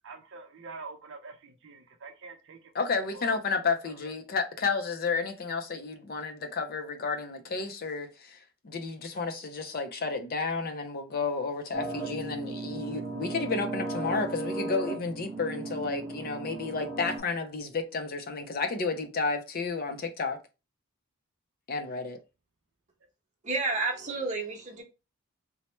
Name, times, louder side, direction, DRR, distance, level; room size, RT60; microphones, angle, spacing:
voice 1, 0.0-2.7 3.1-4.1, right 4 dB, 55° right, 0.5 m, -46 dB
voice 2, 2.7-20.4 21.7-22.2, left 4 dB, 40° left, 0.4 m, -32 dB
sound 1, 11.7-17.2, right 2 dB, 5° right, 1.0 m, -36 dB
voice 3, 23.4-24.8, right 3 dB, 30° right, 0.8 m, -30 dB
4.2 x 2.1 x 3.0 m
head